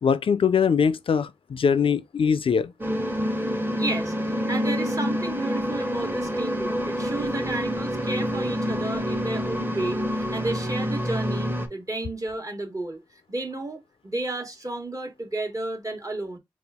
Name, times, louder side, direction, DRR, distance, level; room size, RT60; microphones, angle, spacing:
voice 1, 0.0-2.7, left 6 dB, 75° left, 0.4 m, -22 dB
sound 1, 2.8-11.7, equal, 20° right, 1.0 m, -27 dB
voice 2, 3.7-16.4, right 2 dB, 40° right, 1.2 m, -32 dB
4.2 x 2.4 x 3.5 m
cardioid pair, 50°, 9 cm